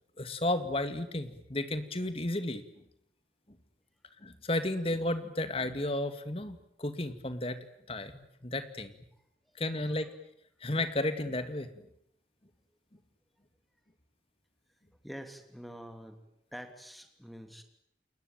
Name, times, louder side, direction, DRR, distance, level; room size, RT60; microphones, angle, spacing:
voice 1, 0.2-2.6 4.2-7.6 7.9-8.9 9.6-10.1 10.6-11.9, left 1 dB, 30° left, 10 dB, 2.2 m, -33 dB
voice 2, 15.0-16.2 16.5-17.6, equal, ahead, 7 dB, 3.0 m, -46 dB
30.0 x 21.0 x 9.2 m, 0.74 s
head